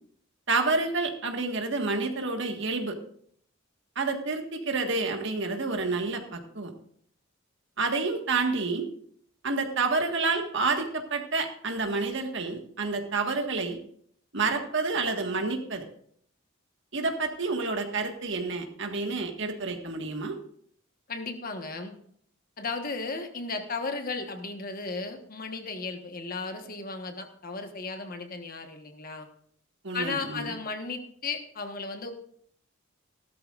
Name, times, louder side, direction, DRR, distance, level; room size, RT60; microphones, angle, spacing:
voice 1, 0.5-3.0 3.9-6.7 7.8-8.9 9.4-13.8 14.3-15.8 16.9-20.4 29.8-30.5, right 3 dB, 60° right, 4 dB, 1.7 m, -29 dB
voice 2, 21.1-21.9 22.6-29.3 29.9-32.1, left 4 dB, 45° left, 5 dB, 1.4 m, -35 dB
16.5 x 13.0 x 2.5 m, 0.64 s
head